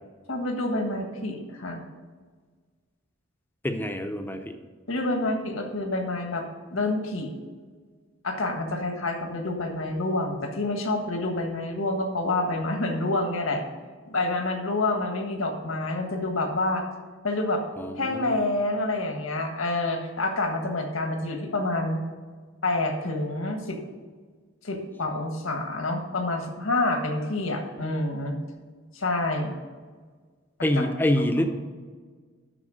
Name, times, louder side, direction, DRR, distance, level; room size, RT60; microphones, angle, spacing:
voice 1, 0.3-1.8 4.9-6.4 6.7-7.3 8.2-13.6 14.1-16.8 17.2-17.6 18.0-22.0 22.6-23.8 24.6-28.4 28.9-29.5 30.7-30.9, left 2 dB, 80° left, 4 dB, 1.5 m, -28 dB
voice 2, 3.6-4.5 17.8-18.4 30.6-31.5, left 1 dB, 10° left, 6 dB, 0.7 m, -26 dB
12.0 x 4.2 x 6.4 m, 1.5 s
head